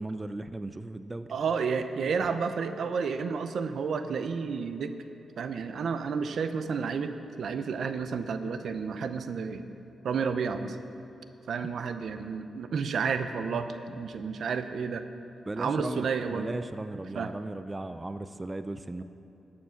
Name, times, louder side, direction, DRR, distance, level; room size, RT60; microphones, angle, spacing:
voice 1, 0.0-1.3 15.5-19.0, right 2 dB, 20° right, 10 dB, 0.4 m, -36 dB
voice 2, 1.3-4.9 5.4-7.1 7.4-9.7 10.0-10.8 11.5-15.0 15.6-16.5 17.1-17.3, right 5 dB, 70° right, 9 dB, 0.6 m, -31 dB
12.0 x 8.7 x 5.8 m, 2.9 s
cardioid pair, 75°, 0 cm